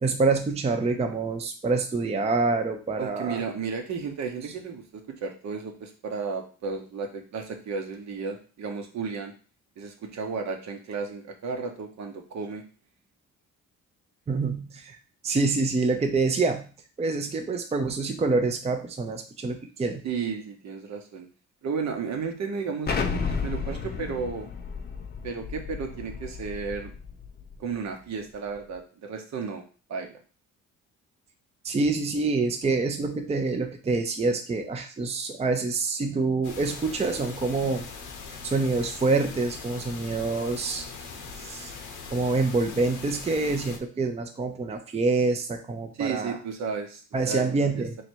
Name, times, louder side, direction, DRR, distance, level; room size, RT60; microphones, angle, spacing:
voice 1, 0.0-3.4 14.3-15.0 15.2-16.7 17.0-20.1 31.6-37.9 38.4-40.8 41.4-41.7 42.1-46.4 47.1-48.0, right 3 dB, 20° right, 5 dB, 0.5 m, -26 dB
voice 2, 3.0-9.3 9.8-12.6 20.0-21.3 21.6-22.9 23.2-24.5 25.2-26.9 27.6-29.6 29.9-30.2 46.0-47.8, right 5 dB, 65° right, 4 dB, 1.0 m, -33 dB
Explosion, 22.9-27.6, left 5 dB, 30° left, 0.7 m, -32 dB
sound 1, 36.4-43.8, left 5 dB, 85° left, 0.8 m, -41 dB
3.2 x 2.8 x 4.4 m, 0.37 s
cardioid pair, 90°, 30 cm